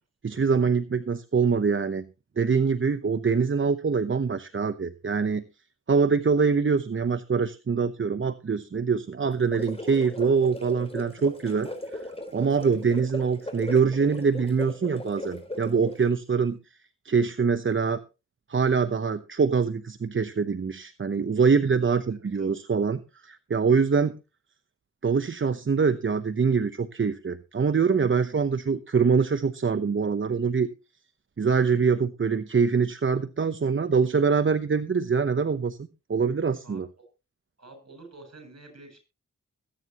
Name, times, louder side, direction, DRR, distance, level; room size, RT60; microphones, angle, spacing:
voice 1, 0.2-2.1 2.4-5.4 5.9-12.0 12.3-16.6 17.0-18.0 18.5-24.2 25.0-30.7 31.4-35.8 36.1-36.9, right 5 dB, 40° right, 11 dB, 0.8 m, -24 dB
sound 1, 9.3-16.1, left 1 dB, 20° left, 4.1 m, -38 dB
voice 2, 22.1-22.5 36.6-36.8 37.6-39.0, right 2 dB, 55° right, 6 dB, 8.0 m, -48 dB
22.0 x 9.5 x 3.0 m, 0.30 s
cardioid pair, 60°, 31 cm